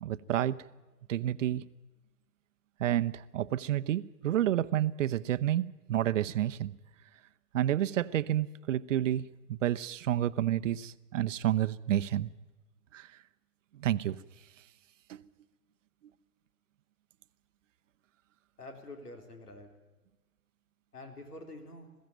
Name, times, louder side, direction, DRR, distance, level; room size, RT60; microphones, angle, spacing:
voice 1, 0.0-0.6 1.1-1.6 2.8-6.7 7.5-12.3 12.9-13.2 13.7-14.2 15.1-15.3 16.0-16.1, right 12 dB, 55° right, 0.8 m, -30 dB
voice 2, 18.6-19.7 20.9-21.9, left 2 dB, 90° left, 4.0 m, -47 dB
21.0 x 15.5 x 9.2 m
hypercardioid pair, 125°, 45 cm